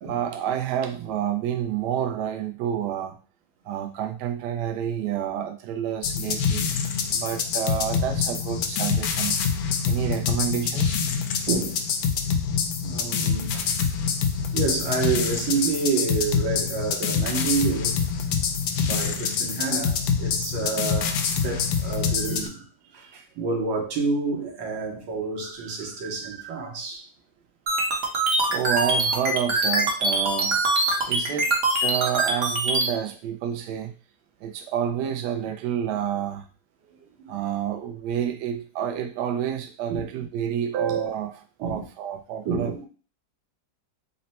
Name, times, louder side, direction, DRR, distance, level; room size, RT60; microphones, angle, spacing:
voice 1, 0.0-3.2 3.6-6.7 7.1-9.3 9.9-11.0 18.3-18.5 23.0-23.2 28.5-30.6 31.1-31.5 31.8-33.9 34.4-36.5 37.3-42.7, right 9 dB, 70° right, 1.1 m, -29 dB
sound 1, 6.0-22.5, left 6 dB, 75° left, 0.9 m, -26 dB
voice 2, 11.5-11.8 12.8-13.7 14.5-18.0 18.8-22.7 22.9-27.0 37.2-37.4 39.9-40.0 41.6-41.8 42.5-42.9, right 4 dB, 90° right, 1.7 m, -29 dB
sound 2, 27.7-32.9, right 2 dB, 50° right, 0.7 m, -23 dB
4.1 x 2.1 x 4.1 m
omnidirectional pair, 2.1 m